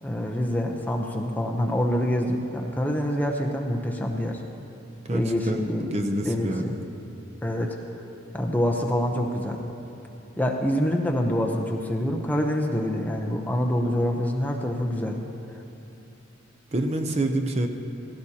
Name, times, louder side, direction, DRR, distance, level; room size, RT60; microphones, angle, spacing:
voice 1, 0.0-4.4 5.1-5.9 6.2-6.7 7.4-7.8 8.3-9.6 10.4-15.2, equal, 10° left, 1 dB, 0.7 m, -26 dB
voice 2, 5.0-6.9 16.7-17.7, right 1 dB, 30° right, 4 dB, 0.6 m, -27 dB
16.0 x 15.5 x 2.8 m, 2.9 s
head